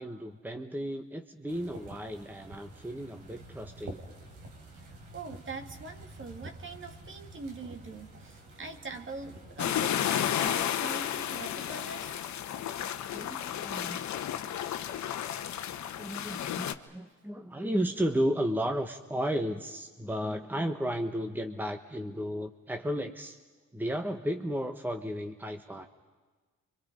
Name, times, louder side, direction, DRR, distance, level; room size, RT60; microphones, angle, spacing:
voice 1, 0.0-4.0 12.8-14.1 15.8-23.4 23.7-25.9, equal, 5° right, 6 dB, 1.3 m, -34 dB
sound 1, 1.5-9.7, right 1 dB, 75° right, 4.2 m, -48 dB
voice 2, 5.1-12.2 17.0-17.1, right 4 dB, 40° right, 6 dB, 2.4 m, -43 dB
sound 2, 9.6-16.7, left 10 dB, 65° left, 1.2 m, -32 dB
29.0 x 25.0 x 5.3 m, 1.4 s
cardioid pair, 90°, 30 cm